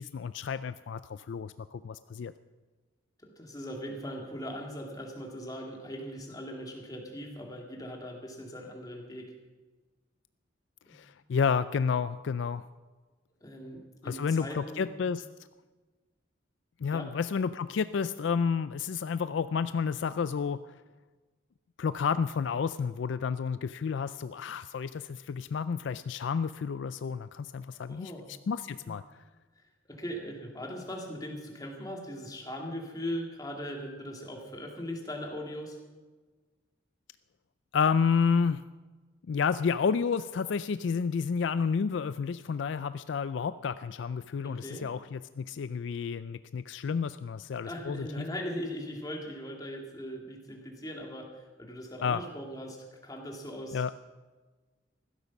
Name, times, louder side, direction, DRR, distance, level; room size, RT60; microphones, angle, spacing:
voice 1, 0.0-2.3 10.9-12.6 14.0-15.2 16.8-20.6 21.8-28.1 28.5-29.0 37.7-38.6 39.3-48.3 52.0-52.2 53.7-53.9, left 6 dB, 70° left, 14 dB, 0.4 m, -30 dB
voice 2, 3.2-9.3 10.9-11.0 13.4-15.0 16.9-17.1 27.9-28.3 28.8-28.9 29.9-35.8 44.4-44.9 47.6-53.8, equal, 20° left, 1 dB, 2.3 m, -40 dB
15.5 x 12.5 x 6.0 m, 1.3 s
head